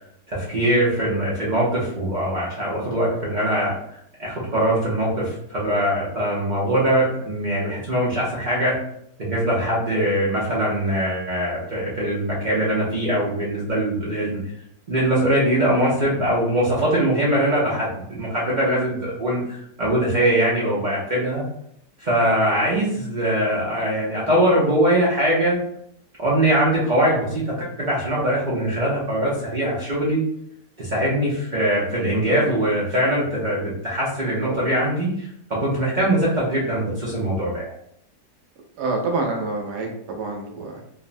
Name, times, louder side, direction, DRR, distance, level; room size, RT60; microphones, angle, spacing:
voice 1, 0.3-3.8 4.2-8.8 9.2-14.4 14.9-21.4 22.0-25.6 26.2-30.3 30.8-37.7, right 1 dB, 55° right, -7 dB, 0.5 m, -22 dB
voice 2, 38.8-40.8, right 3 dB, 90° right, 1 dB, 1.2 m, -27 dB
3.3 x 2.0 x 2.5 m, 0.72 s
omnidirectional pair, 1.7 m